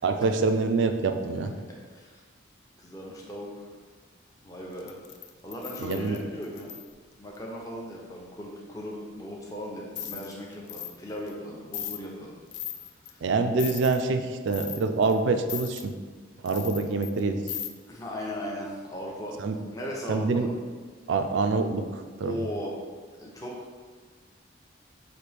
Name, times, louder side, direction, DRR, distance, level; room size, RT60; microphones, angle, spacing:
voice 1, 0.0-1.5 5.8-6.2 13.2-15.9 16.4-17.4 19.4-19.6 20.1-20.5 21.1-22.3, right 4 dB, 75° right, 7 dB, 0.4 m, -26 dB
voice 2, 1.9-2.2 2.8-3.7 4.4-4.9 5.4-6.7 7.2-12.4 13.1-13.2 17.9-19.4 19.7-20.5 22.2-22.8 23.2-23.7, equal, 20° left, -3 dB, 0.6 m, -37 dB
sound 1, 4.8-6.9 9.9-10.3 10.7-10.9 11.3-11.4 11.7-12.0 12.5-13.1 13.6-14.0 14.5-15.1 15.5-15.8 16.5-17.2 17.5-17.7, left 10 dB, 60° left, 0.3 m, -37 dB
5.9 x 2.6 x 3.4 m, 1.5 s
head